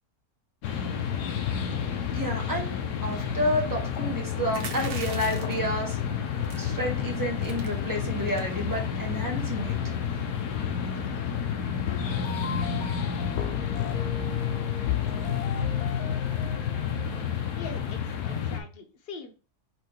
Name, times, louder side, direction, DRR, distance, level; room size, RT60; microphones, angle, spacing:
sound 1, 0.6-18.6, left 8 dB, 90° left, 1.3 m, -30 dB
voice 1, 2.1-2.7 3.0-6.0 6.5-9.8, equal, 15° right, -1 dB, 1.1 m, -30 dB
sound 2, 4.5-5.7 6.4-6.7 7.1-7.2 7.4-7.7 8.2-8.5, right 4 dB, 75° right, 1.4 m, -40 dB
sound 3, 11.9-17.9, left 7 dB, 75° left, 1.1 m, -32 dB
voice 2, 17.6-19.3, left 4 dB, 50° left, 6 dB, 0.8 m, -42 dB
4.5 x 2.6 x 4.4 m, 0.34 s
omnidirectional pair, 1.7 m